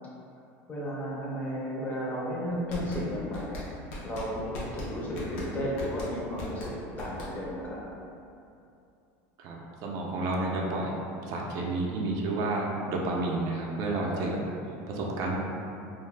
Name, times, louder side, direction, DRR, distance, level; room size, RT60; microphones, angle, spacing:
voice 1, 0.7-3.6 4.0-4.5 4.7-7.8 14.1-14.3, equal, 25° left, -5 dB, 0.5 m, -33 dB
sound 1, 2.5-7.6, left 1 dB, 85° left, 0.7 m, -39 dB
voice 2, 9.4-10.9 11.2-14.4 14.9-15.4, right 2 dB, 55° right, -1 dB, 0.4 m, -30 dB
2.4 x 2.0 x 3.2 m, 2.6 s
supercardioid pair, 140°, 7 cm